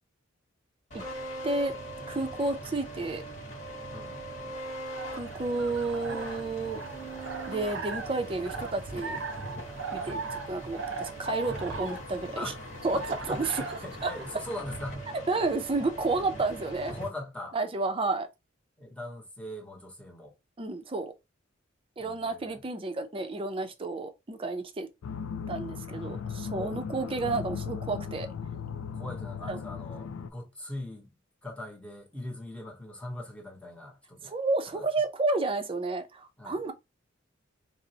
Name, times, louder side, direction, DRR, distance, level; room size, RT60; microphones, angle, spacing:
sound 1, 0.9-17.1, right 1 dB, 40° left, 1.1 m, -41 dB
voice 1, 1.4-1.7 2.1-3.2 5.2-6.8 7.5-9.2 9.9-12.5 12.8-13.0 13.3-13.6 14.0-14.1 15.3-16.9 17.5-18.3 20.6-21.1 22.0-24.9 25.5-28.3 29.5-29.6 34.2-36.7, right 3 dB, 30° right, 0.5 m, -31 dB
sound 2, 4.6-14.4, right 4 dB, 75° right, 0.6 m, -40 dB
voice 2, 12.4-15.0 16.9-17.6 18.8-20.3 22.0-22.6 26.5-26.8 28.9-31.1 31.4-34.3 34.7-34.8 36.4-36.6, left 1 dB, 5° left, 0.8 m, -41 dB
sound 3, 25.0-30.3, left 6 dB, 80° left, 0.3 m, -37 dB
3.9 x 2.0 x 2.7 m
head